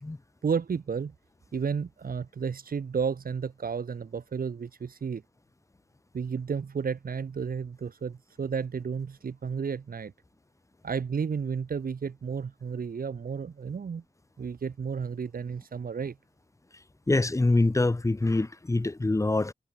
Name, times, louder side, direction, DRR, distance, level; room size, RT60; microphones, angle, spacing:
voice 1, 0.4-1.1 1.5-5.2 6.1-10.1 10.8-14.0 14.4-16.2, right 6 dB, 75° right, 2.1 m, -32 dB
voice 2, 17.1-19.5, left 2 dB, 20° left, 1.1 m, -25 dB
wide cardioid pair, 115°, 15 cm